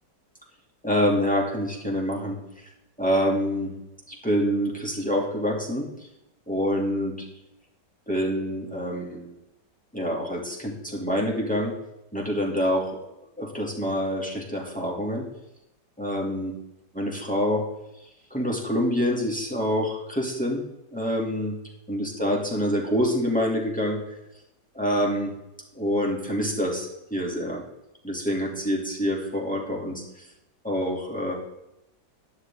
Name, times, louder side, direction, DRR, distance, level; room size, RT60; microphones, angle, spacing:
voice 1, 0.8-2.7 3.0-3.7 4.1-6.1 6.5-7.3 8.1-9.4 9.9-11.7 12.1-13.0 13.4-15.3 16.0-16.5 16.9-17.7 18.3-20.6 20.9-21.6 21.9-24.0 24.7-25.3 25.7-27.6 28.0-30.3 30.6-31.3, equal, 5° left, -2 dB, 2.6 m, -26 dB
12.5 x 11.0 x 3.7 m, 0.89 s
omnidirectional pair, 1.9 m